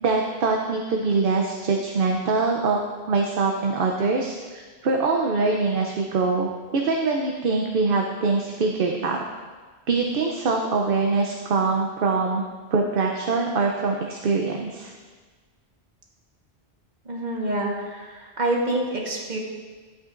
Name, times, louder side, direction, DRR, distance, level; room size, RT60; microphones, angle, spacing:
voice 1, 0.0-2.8 3.1-9.2 9.9-12.5 12.7-14.9, right 4 dB, 60° right, 1 dB, 0.8 m, -23 dB
voice 2, 17.0-19.4, right 1 dB, 45° right, -1 dB, 1.4 m, -27 dB
11.5 x 8.3 x 2.5 m, 1.4 s
omnidirectional pair, 1.1 m